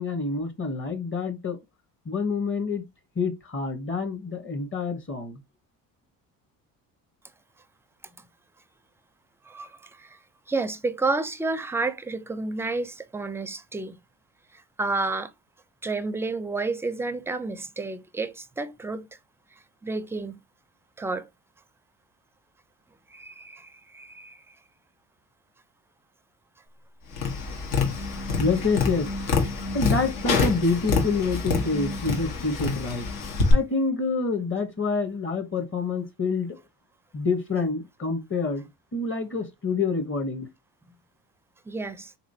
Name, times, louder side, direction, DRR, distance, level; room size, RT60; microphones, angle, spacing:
voice 1, 0.0-1.6 2.0-2.8 3.2-5.4 28.1-29.3 29.7-33.1 33.5-36.6 37.1-38.6 38.9-40.5, left 4 dB, 35° left, 1.0 m, -27 dB
voice 2, 9.4-10.2 10.5-14.0 14.5-15.3 15.8-19.1 19.8-20.4 21.0-21.3 23.1-24.4 41.7-42.1, right 3 dB, 5° right, 0.4 m, -30 dB
Tap, 27.1-33.5, left 4 dB, 80° left, 1.1 m, -26 dB
3.6 x 3.0 x 2.6 m
cardioid pair, 90°, 35 cm